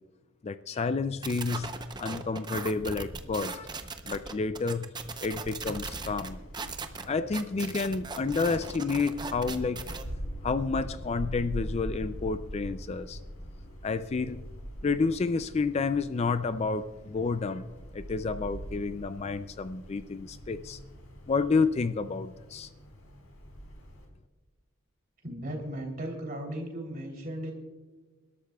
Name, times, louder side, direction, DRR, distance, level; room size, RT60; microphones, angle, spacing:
voice 1, 0.4-3.8 4.1-4.9 5.2-6.4 7.1-9.9 10.4-13.2 13.8-14.4 14.8-17.7 17.9-20.8 21.3-22.7, left 4 dB, 30° left, 12 dB, 0.3 m, -30 dB
sound 1, 1.2-10.0, right 4 dB, 20° right, 0.7 m, -39 dB
Wind, 5.5-24.0, equal, 85° left, 4.2 m, -43 dB
voice 2, 25.2-27.5, right 1 dB, 40° right, 1 dB, 3.2 m, -36 dB
28.5 x 12.5 x 2.3 m, 1.3 s
head